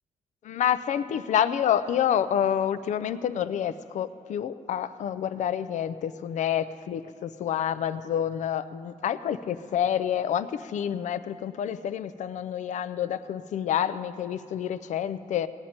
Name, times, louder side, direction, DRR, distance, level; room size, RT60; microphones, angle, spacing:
voice 1, 0.4-15.5, left 9 dB, 60° left, 13 dB, 0.5 m, -28 dB
19.0 x 9.5 x 4.3 m, 2.5 s
cardioid pair, 145°, 14 cm